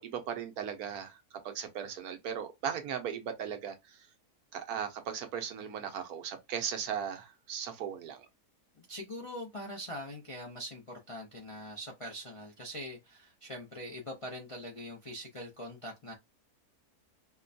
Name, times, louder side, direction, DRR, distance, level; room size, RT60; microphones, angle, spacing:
voice 1, 0.0-4.0 4.5-8.3, right 8 dB, 75° right, 1.2 m, -37 dB
voice 2, 8.8-16.1, equal, 40° left, 0.4 m, -43 dB
4.7 x 2.2 x 2.5 m
omnidirectional pair, 1.6 m